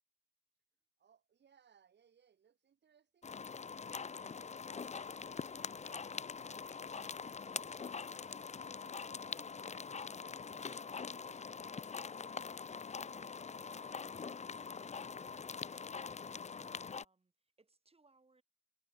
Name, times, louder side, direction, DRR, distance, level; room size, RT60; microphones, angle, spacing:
voice 1, 1.0-8.5 8.8-12.5 12.9-15.2, right 7 dB, 80° right, 2.0 m, -71 dB
sound 1, 3.2-17.0, left 5 dB, 40° left, 0.6 m, -44 dB
sound 2, 3.8-8.1, left 8 dB, 75° left, 1.2 m, -68 dB
voice 2, 16.6-18.4, right 3 dB, 35° right, 3.7 m, -73 dB
cardioid pair, 60°, 18 cm